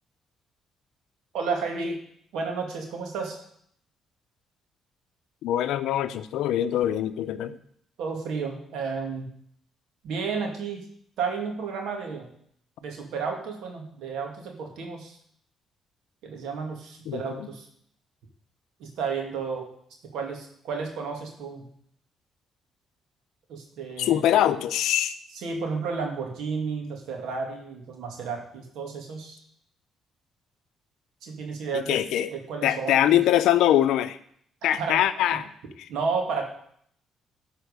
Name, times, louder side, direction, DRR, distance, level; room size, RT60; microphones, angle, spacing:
voice 1, 1.3-2.0 2.3-3.4 8.0-9.3 10.0-10.8 11.2-12.3 12.8-15.2 16.2-17.7 18.8-19.7 20.1-21.7 23.5-24.2 25.4-29.4 31.2-32.0 32.3-33.2 34.8-35.0 35.9-36.4, right 5 dB, 85° right, 2 dB, 2.2 m, -32 dB
voice 2, 5.4-7.6 17.1-17.5 24.0-25.1 31.7-32.3 32.6-34.2 34.6-35.5, left 11 dB, 85° left, 12 dB, 0.6 m, -23 dB
12.5 x 4.5 x 6.8 m, 0.65 s
cardioid pair, 90°, 0 cm